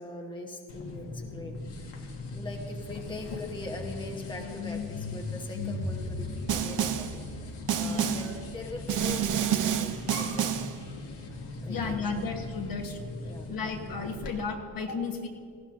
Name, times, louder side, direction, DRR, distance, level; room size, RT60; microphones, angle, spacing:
voice 1, 0.0-2.0 2.3-10.8 11.6-12.0 13.2-13.5, left 2 dB, 10° left, 1 dB, 1.0 m, -42 dB
sound 1, 0.7-14.3, left 2 dB, 80° left, 1.7 m, -38 dB
Snare drum, 6.5-7.2 7.7-8.4 8.9-10.8, right 10 dB, 45° right, 0.6 m, -29 dB
voice 2, 7.8-8.3 11.7-13.1 13.5-15.3, left 4 dB, 50° left, 3 dB, 1.3 m, -34 dB
18.5 x 15.0 x 2.6 m, 2.3 s
cardioid pair, 135°, 42 cm